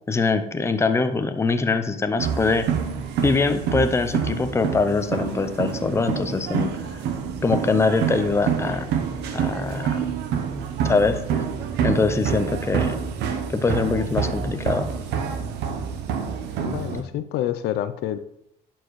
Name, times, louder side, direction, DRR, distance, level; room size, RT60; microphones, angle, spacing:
voice 1, 0.1-2.7 3.2-6.7 7.4-8.8 9.3-10.0 10.8-11.4 11.8-13.0 13.5-14.9, left 4 dB, 15° left, 9 dB, 0.6 m, -23 dB
sound 1, 2.2-17.0, right 7 dB, 85° right, 0.8 m, -27 dB
voice 2, 16.6-18.2, left 11 dB, 80° left, 11 dB, 0.5 m, -27 dB
11.5 x 4.5 x 3.1 m, 0.77 s
cardioid pair, 110°, 17 cm